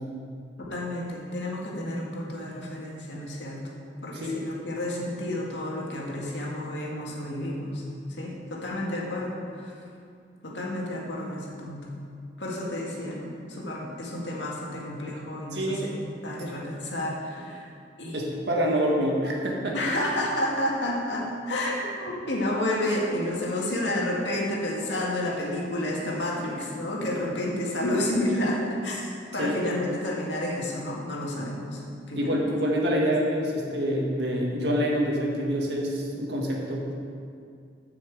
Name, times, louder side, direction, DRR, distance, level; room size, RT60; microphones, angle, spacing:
voice 1, 0.6-3.6 4.0-7.8 8.1-9.7 10.4-11.9 12.4-15.9 16.2-17.7 18.0-18.3 19.7-31.8 32.1-32.5, left 1 dB, 90° left, -3 dB, 2.0 m, -30 dB
voice 2, 15.5-15.8 18.1-19.7 29.4-29.6 32.1-36.9, equal, 70° right, -2 dB, 1.8 m, -26 dB
8.2 x 6.2 x 7.6 m, 2.4 s
head